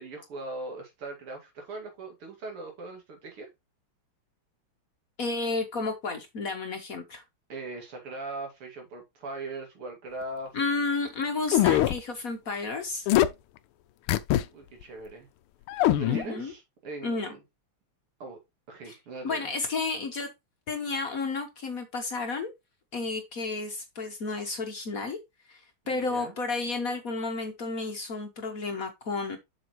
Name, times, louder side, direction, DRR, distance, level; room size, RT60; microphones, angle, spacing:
voice 1, 0.0-3.5 7.5-10.6 14.5-15.3 15.9-17.4 18.2-18.4 18.7-19.5 25.9-26.4, right 2 dB, 90° right, 3.3 m, -40 dB
voice 2, 5.2-7.2 10.5-13.1 16.1-16.5 17.0-17.3 18.9-19.0 19.2-20.3 20.7-22.5 22.9-25.2 25.5-29.4, left 3 dB, 50° left, 1.2 m, -32 dB
sound 1, 11.5-12.0 13.1-13.3 14.1-14.4 14.8-14.9 15.7-16.2, left 13 dB, 90° left, 1.5 m, -22 dB
7.4 x 5.9 x 3.1 m
omnidirectional pair, 2.4 m